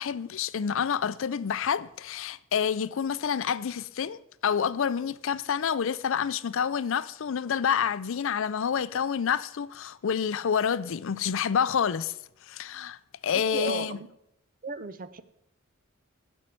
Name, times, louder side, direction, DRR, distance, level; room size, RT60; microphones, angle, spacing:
voice 1, 0.0-12.1 12.5-13.0 13.2-14.0, left 7 dB, 65° left, 0.4 m, -28 dB
voice 2, 13.5-14.1 14.6-15.2, right 4 dB, 40° right, 0.6 m, -34 dB
12.0 x 5.4 x 9.0 m
head